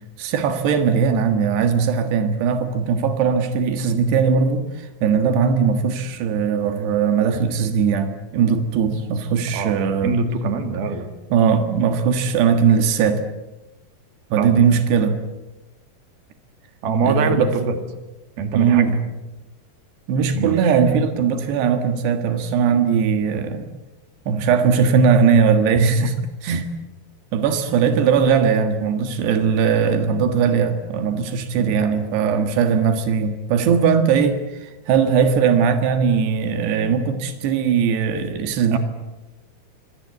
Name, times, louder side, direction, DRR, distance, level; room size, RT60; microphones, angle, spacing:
voice 1, 0.2-10.1 11.3-13.2 14.3-15.2 17.0-17.5 18.5-18.9 20.1-23.7 24.3-26.2 26.4-26.7 27.3-38.8, right 6 dB, 90° right, 7 dB, 3.7 m, -19 dB
voice 2, 10.0-11.1 14.4-14.9 16.8-17.8 18.4-19.0 20.3-20.8 26.0-26.1 26.5-26.6 31.5-31.7 38.7-38.8, right 4 dB, 70° right, 7 dB, 4.2 m, -24 dB
26.0 x 24.0 x 8.2 m, 1.1 s
omnidirectional pair, 4.7 m